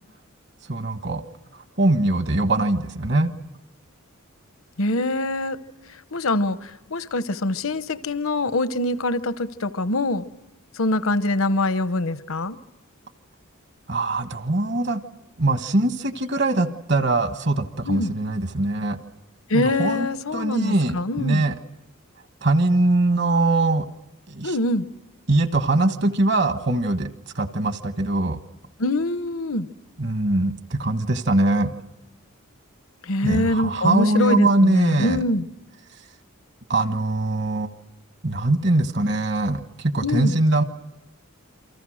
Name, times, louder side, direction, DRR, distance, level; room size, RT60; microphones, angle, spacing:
voice 1, 0.7-1.2 1.8-3.3 13.9-15.0 15.4-19.0 19.5-20.1 20.3-21.6 22.4-23.9 24.3-24.6 25.3-27.1 27.3-28.4 30.0-31.7 33.2-35.2 36.7-37.7 38.2-40.6, right 2 dB, 55° right, 9 dB, 1.4 m, -22 dB
voice 2, 4.8-5.6 6.1-10.2 10.8-12.6 17.9-18.1 19.5-21.4 24.4-24.8 28.8-29.7 33.0-35.5 40.0-40.4, left 2 dB, 75° left, 13 dB, 0.9 m, -24 dB
28.5 x 24.5 x 6.4 m, 0.96 s
head